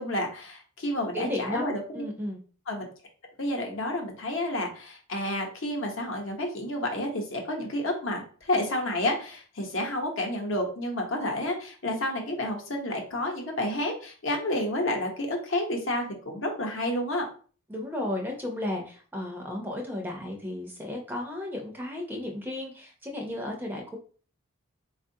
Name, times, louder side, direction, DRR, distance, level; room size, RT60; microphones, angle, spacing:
voice 1, 0.0-1.8 2.7-2.9 3.4-17.2, left 1 dB, 60° left, 2 dB, 0.8 m, -30 dB
voice 2, 1.0-2.4 17.7-24.0, left 1 dB, 10° right, 0 dB, 0.5 m, -34 dB
4.4 x 2.4 x 2.6 m, 0.40 s
head